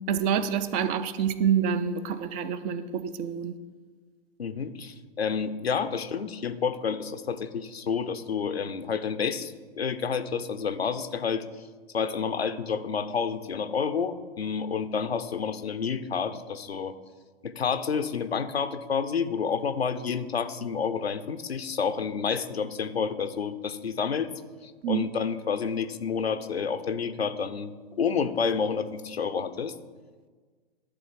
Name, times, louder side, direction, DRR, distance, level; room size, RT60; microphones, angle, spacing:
voice 1, 0.1-3.5 24.8-25.1, right 8 dB, 30° right, 12 dB, 0.5 m, -27 dB
voice 2, 4.4-11.4 11.9-16.9 17.4-24.3 24.6-27.7 28.0-29.7, left 6 dB, 85° left, 11 dB, 0.7 m, -29 dB
11.5 x 3.8 x 7.6 m, 1.5 s
figure-of-eight pair, 105°, 30 cm